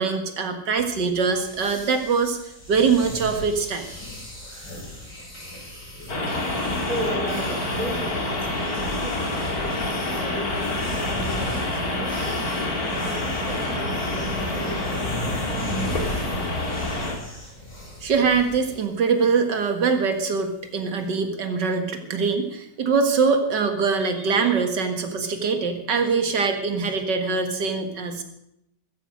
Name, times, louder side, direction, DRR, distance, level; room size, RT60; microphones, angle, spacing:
voice 1, 0.0-2.4 2.7-3.8 18.0-28.2, right 5 dB, 75° right, 6 dB, 2.4 m, -23 dB
sound 1, 1.2-18.8, left 1 dB, 70° left, 8.1 m, -37 dB
sound 2, 6.1-17.1, left 2 dB, 55° left, 3.0 m, -27 dB
voice 2, 6.9-12.4 13.0-15.3, equal, 25° right, 4 dB, 2.6 m, -35 dB
15.0 x 14.5 x 6.3 m, 0.80 s
omnidirectional pair, 1.9 m